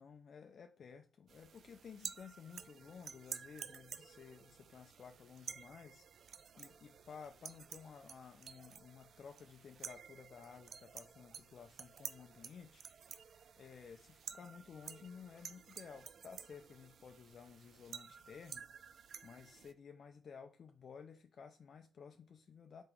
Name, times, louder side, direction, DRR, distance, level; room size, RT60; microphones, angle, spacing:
voice 1, 0.0-18.6 18.9-22.8, left 6 dB, 65° left, 0.3 m, -55 dB
sound 1, 1.3-19.7, right 7 dB, 70° right, 0.3 m, -52 dB
3.4 x 2.9 x 4.7 m
supercardioid pair, 50°, 0 cm